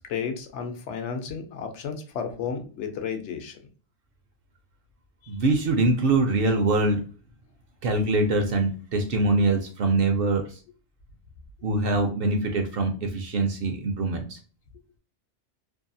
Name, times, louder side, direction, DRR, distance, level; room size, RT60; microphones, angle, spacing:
voice 1, 0.0-3.6, left 6 dB, 75° left, 5 dB, 0.9 m, -32 dB
voice 2, 5.3-7.0 7.8-10.6 11.6-14.4, right 2 dB, 60° right, 4 dB, 0.6 m, -23 dB
2.7 x 2.3 x 2.6 m, 0.39 s
omnidirectional pair, 1.2 m